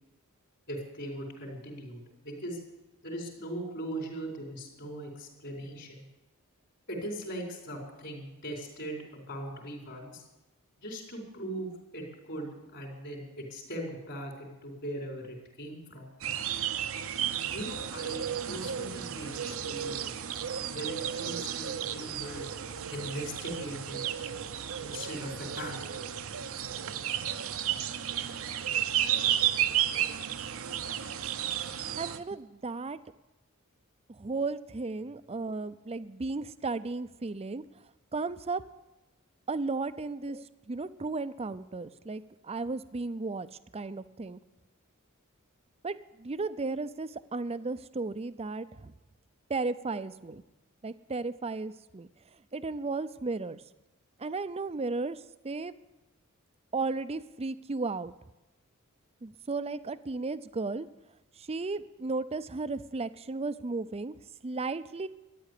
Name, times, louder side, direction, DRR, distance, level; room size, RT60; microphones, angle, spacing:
voice 1, 0.7-2.6 3.0-6.1 6.9-10.2 10.8-16.1 17.5-20.2 20.7-22.5 22.9-24.0 24.8-25.8 49.9-50.0, right 1 dB, 55° left, 1 dB, 4.7 m, -40 dB
sound 1, 16.2-32.2, right 10 dB, 65° right, 0.7 m, -33 dB
voice 2, 32.0-33.0 34.1-37.6 38.1-38.6 39.5-43.5 43.7-44.4 45.8-48.9 49.5-50.4 50.8-52.1 52.5-53.6 54.2-55.7 56.7-58.1 59.2-60.9 61.4-64.1 64.4-65.1, right 3 dB, 30° right, 14 dB, 0.5 m, -34 dB
14.0 x 10.5 x 8.4 m, 1.0 s
head